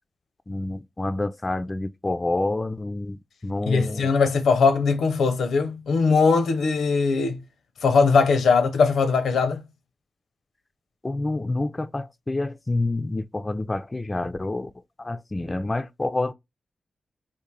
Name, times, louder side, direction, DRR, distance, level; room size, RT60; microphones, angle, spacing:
voice 1, 0.5-3.2 3.4-4.1 11.0-14.7 15.0-16.3, left 2 dB, 30° left, 0.3 m, -28 dB
voice 2, 3.7-7.4 7.8-9.6, left 4 dB, 90° left, 0.5 m, -20 dB
3.6 x 2.5 x 3.1 m
cardioid pair, 50°, 0 cm